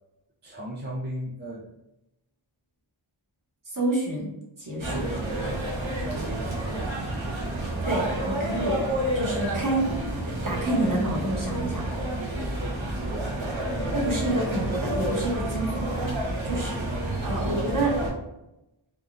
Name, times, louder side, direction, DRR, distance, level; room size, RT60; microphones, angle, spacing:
voice 1, 0.4-1.7 4.8-7.6 12.3-13.5 13.7-14.2 16.5-17.9, right 1 dB, 20° right, -5 dB, 0.5 m, -39 dB
voice 2, 3.7-4.3 4.6-5.0 7.9-8.8 9.1-9.9 10.2-11.9 13.9-16.0 16.4-17.9, right 2 dB, 40° right, -3 dB, 1.1 m, -28 dB
sound 1, 4.8-18.1, right 1 dB, 70° right, 0.9 m, -29 dB
3.5 x 2.3 x 2.6 m, 0.89 s
wide cardioid pair, 50°, 49 cm